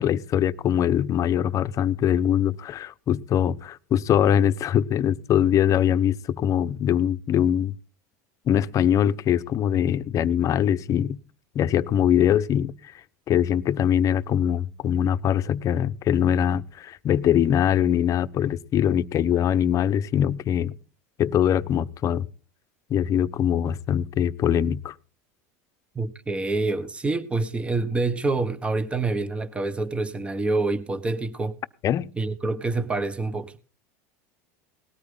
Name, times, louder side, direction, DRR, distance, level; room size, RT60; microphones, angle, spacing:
voice 1, 0.0-7.7 8.5-11.2 11.5-12.9 13.3-20.7 21.2-22.3 22.9-24.9 31.8-32.1, left 10 dB, 40° left, 1.0 m, -22 dB
voice 2, 25.9-31.5 32.2-33.6, right 3 dB, 15° right, 1.5 m, -27 dB
19.5 x 13.5 x 3.9 m
supercardioid pair, 105°, 8 cm